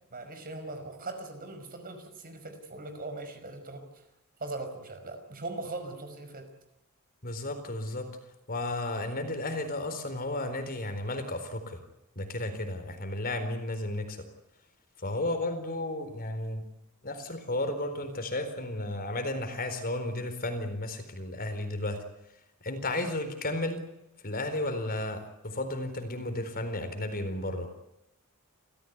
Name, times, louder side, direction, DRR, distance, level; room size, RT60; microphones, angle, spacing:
voice 1, 0.1-4.0 4.4-6.5, right 2 dB, 45° right, 7 dB, 5.3 m, -40 dB
voice 2, 7.2-8.1 8.5-11.8 12.2-14.3 15.0-16.6 17.0-22.0 22.6-23.8 24.2-27.7, left 1 dB, 45° left, 7 dB, 4.2 m, -33 dB
28.5 x 15.5 x 9.6 m, 0.88 s
head